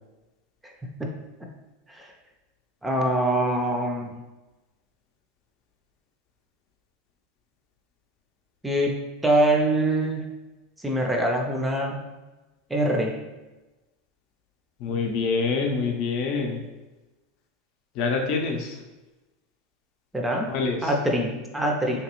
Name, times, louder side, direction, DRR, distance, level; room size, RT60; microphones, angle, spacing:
voice 1, 2.8-4.2 8.6-8.9 9.2-10.3 10.8-12.1 12.7-13.2 20.1-20.5 20.8-22.0, right 1 dB, 10° right, 1 dB, 0.5 m, -24 dB
voice 2, 14.8-16.6 17.9-18.8 20.5-20.9, left 4 dB, 55° left, 2 dB, 0.6 m, -26 dB
3.3 x 2.9 x 3.0 m, 1.1 s
supercardioid pair, 115°, 0 cm